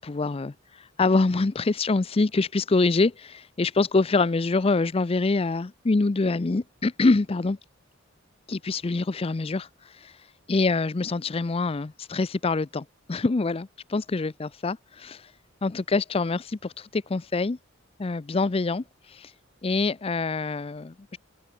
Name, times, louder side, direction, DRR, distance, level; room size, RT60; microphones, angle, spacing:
voice 1, 0.0-7.6 8.5-10.2 10.5-15.3 15.6-17.6 18.0-19.3 19.6-21.2, left 3 dB, 30° left, 0.5 m, -25 dB
head